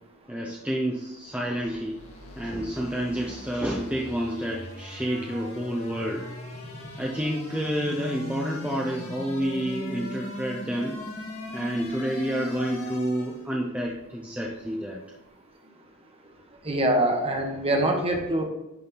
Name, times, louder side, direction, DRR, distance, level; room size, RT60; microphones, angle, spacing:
voice 1, 0.3-2.0 2.4-6.3 7.0-11.0 11.5-15.0, equal, 5° right, -2 dB, 0.7 m, -29 dB
sound 1, 1.3-13.5, left 1 dB, 70° left, 1.9 m, -39 dB
voice 2, 16.7-18.4, right 1 dB, 25° right, 2 dB, 1.3 m, -24 dB
11.0 x 4.3 x 3.9 m, 0.95 s
head